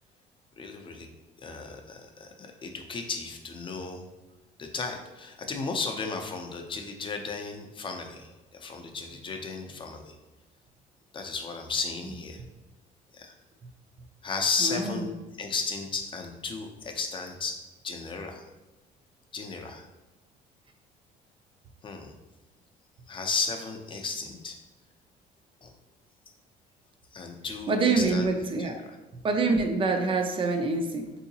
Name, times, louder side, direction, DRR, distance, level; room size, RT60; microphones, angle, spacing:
voice 1, 0.6-1.1 1.4-4.0 4.6-10.2 11.1-12.4 13.1-13.3 14.2-15.1 15.4-17.6 17.8-18.4 19.3-19.9 21.8-22.1 23.1-24.5 25.6-25.7 27.1-28.3 28.6-29.0, left 4 dB, 30° left, 4 dB, 0.5 m, -34 dB
voice 2, 14.6-15.1 27.7-28.8 29.2-31.1, right 3 dB, 30° right, 5 dB, 0.4 m, -26 dB
3.7 x 2.7 x 2.7 m, 1.1 s
cardioid pair, 110°, 17 cm